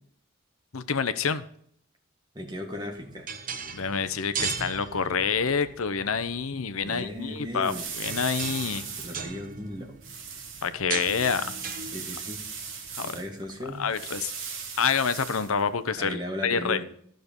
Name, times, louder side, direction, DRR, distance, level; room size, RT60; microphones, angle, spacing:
voice 1, 0.7-1.4 3.7-8.9 10.6-11.5 13.0-13.2 13.8-14.3 14.8-16.8, left 6 dB, 90° left, 13 dB, 0.8 m, -27 dB
voice 2, 2.3-3.3 6.8-7.9 9.0-10.0 11.9-12.4 13.1-13.9 16.0-16.8, equal, 20° right, 2 dB, 1.9 m, -36 dB
sound 1, 2.7-14.1, right 5 dB, 40° right, 1.0 m, -39 dB
sound 2, 6.8-16.0, right 6 dB, 65° right, 2.7 m, -39 dB
13.0 x 6.6 x 5.3 m, 0.65 s
head